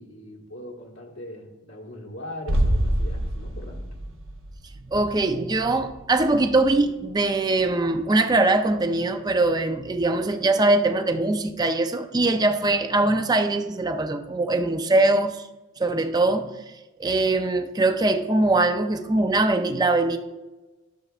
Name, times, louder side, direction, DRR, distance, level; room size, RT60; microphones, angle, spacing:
voice 1, 0.0-3.9, left 1 dB, 85° left, -1 dB, 1.5 m, -40 dB
sound 1, 2.5-8.2 8.5-8.6, right 1 dB, 70° right, 1.0 m, -29 dB
voice 2, 4.9-15.5 15.8-16.5 17.0-20.2, right 2 dB, 20° right, 7 dB, 0.4 m, -22 dB
12.0 x 7.0 x 2.4 m, 1.1 s
head